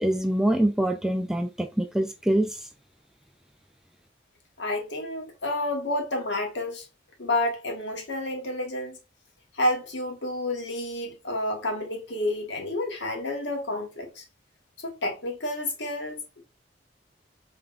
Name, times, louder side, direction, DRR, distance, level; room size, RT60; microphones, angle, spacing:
voice 1, 0.0-2.6, right 1 dB, 5° right, 0.4 m, -24 dB
voice 2, 4.6-6.8 7.2-9.0 9.5-14.2 14.8-16.4, left 1 dB, 80° left, 1.5 m, -30 dB
5.8 x 3.4 x 2.5 m
head